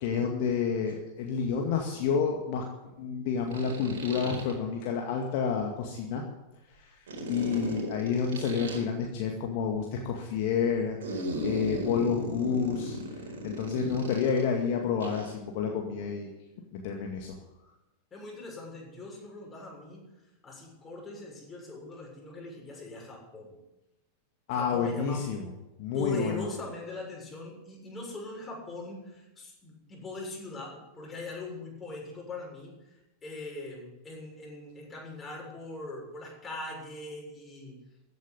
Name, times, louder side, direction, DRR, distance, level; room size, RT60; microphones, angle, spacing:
voice 1, 0.0-2.6 3.0-6.2 6.8-7.0 7.3-13.0 13.4-16.3 16.7-17.4 24.5-25.4 25.8-26.5, left 6 dB, 50° left, 1 dB, 2.1 m, -29 dB
sound 1, 0.9-1.0 3.5-4.5 7.1-8.8 11.0-14.4 15.0-15.4, right 1 dB, 60° right, 4.5 m, -36 dB
voice 2, 18.1-23.6 24.5-25.3 25.9-37.8, left 2 dB, 20° left, -1 dB, 6.9 m, -41 dB
15.0 x 9.4 x 9.8 m, 0.98 s
figure-of-eight pair, 90°, 0 cm